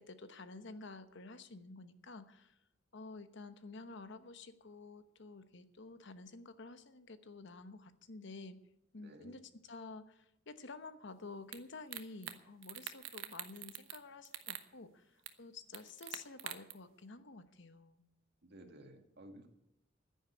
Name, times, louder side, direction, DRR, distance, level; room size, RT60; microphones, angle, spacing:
voice 1, 0.0-2.6 2.9-8.6 8.9-18.0, left 3 dB, 65° left, 11 dB, 1.1 m, -51 dB
voice 2, 9.0-9.3 18.4-19.5, right 1 dB, 60° right, 5 dB, 2.0 m, -55 dB
sound 1, 11.5-11.6 11.9-12.4 12.6-14.0 14.3-14.6 15.3-15.4 15.7-16.7, right 11 dB, 85° right, 1.1 m, -44 dB
10.5 x 10.0 x 9.6 m, 0.82 s
head